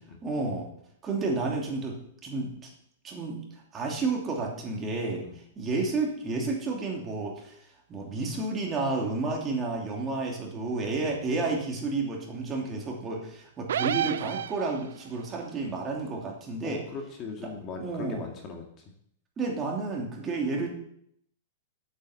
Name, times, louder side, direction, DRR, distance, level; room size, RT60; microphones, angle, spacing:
voice 1, 0.2-0.7 1.0-2.5 3.0-3.4 3.7-5.2 5.6-7.6 7.9-16.8 17.8-18.2 19.4-20.7, right 3 dB, 20° right, -1 dB, 2.7 m, -31 dB
sound 1, 13.7-15.1, right 10 dB, 80° right, 0.4 m, -30 dB
voice 2, 16.6-18.6, left 4 dB, 30° left, 2 dB, 1.9 m, -39 dB
9.4 x 8.7 x 7.1 m, 0.70 s
hypercardioid pair, 150°, 0 cm